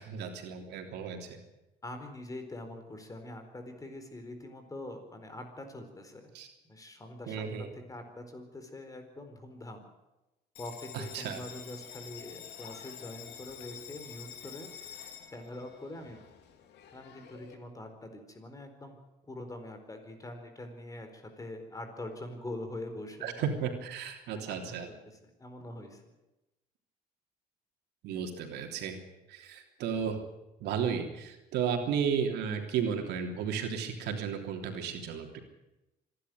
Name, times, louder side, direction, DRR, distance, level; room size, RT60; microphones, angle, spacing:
voice 1, 0.0-1.4 6.3-6.5 7.3-7.7 10.9-11.4 23.2-24.9 28.0-29.0 29.3-30.2 30.6-35.4, right 7 dB, 80° right, 4 dB, 3.3 m, -33 dB
voice 2, 1.8-6.3 6.7-7.5 7.7-9.8 10.6-14.7 15.3-16.2 16.9-19.0 19.2-23.5 24.3-26.1, left 1 dB, 20° left, 7 dB, 4.3 m, -44 dB
Bell, 10.5-17.5, left 9 dB, 80° left, 2.8 m, -48 dB
26.0 x 11.5 x 9.4 m, 0.98 s
cardioid pair, 110°, 17 cm